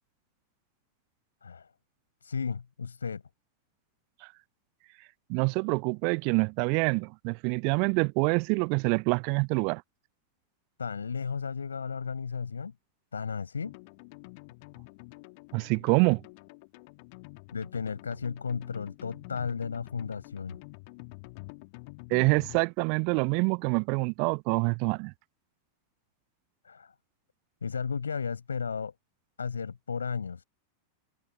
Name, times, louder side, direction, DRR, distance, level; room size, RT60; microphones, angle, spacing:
voice 1, 2.2-3.2 10.8-12.7 13.1-13.8 17.5-20.6 26.6-26.9 27.6-28.9 29.4-30.4, left 6 dB, 75° left, 6.5 m, -34 dB
voice 2, 5.3-9.8 15.5-16.2 22.1-25.1, right 38 dB, 45° right, 0.4 m, -26 dB
sound 1, 13.6-22.6, left 28 dB, 45° left, 2.2 m, -48 dB
figure-of-eight pair, 90°, 0 cm